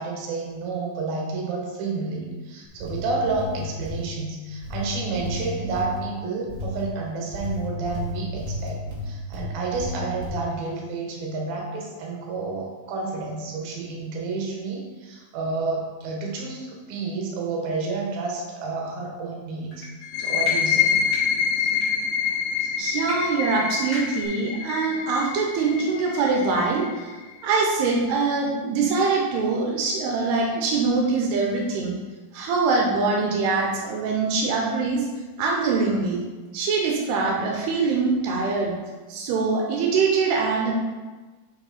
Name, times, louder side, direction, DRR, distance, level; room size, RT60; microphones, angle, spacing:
voice 1, 0.0-19.9 20.2-21.0 21.6-21.7 22.6-22.7, right 3 dB, 70° right, -1 dB, 2.9 m, -30 dB
sound 1, 2.6-4.1 4.6-6.0 6.5-6.9 7.3-9.5 9.7-10.4, left 1 dB, 35° right, 2.3 m, -33 dB
sound 2, 19.7-19.9 20.4-20.6 21.0-21.2 21.7-21.9 23.0-23.1 23.4-23.5 23.9-24.2, left 2 dB, 35° left, 1.4 m, -34 dB
sound 3, 20.0-27.4, left 8 dB, 80° left, 2.6 m, -26 dB
voice 2, 22.8-26.9 27.4-32.0 32.3-35.1 35.4-36.2 36.5-38.7 39.1-40.7, right 4 dB, 85° right, -1 dB, 2.9 m, -23 dB
6.5 x 5.4 x 4.1 m, 1.3 s
omnidirectional pair, 4.5 m